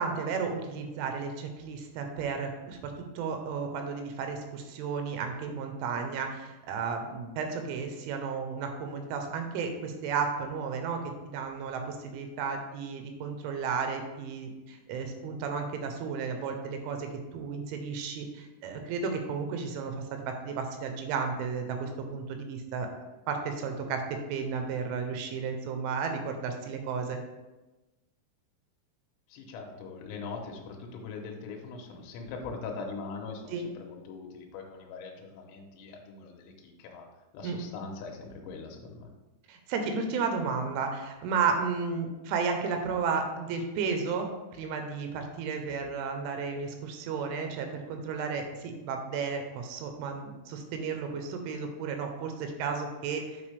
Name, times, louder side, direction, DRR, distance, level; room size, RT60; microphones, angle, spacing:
voice 1, 0.0-22.9 23.3-27.2 33.5-33.7 37.4-37.6 39.5-53.4, right 5 dB, 85° right, 5 dB, 3.3 m, -33 dB
voice 2, 29.3-37.1 37.3-39.1, left 4 dB, 80° left, 1 dB, 2.9 m, -41 dB
8.6 x 4.5 x 3.3 m, 1.1 s
omnidirectional pair, 5.4 m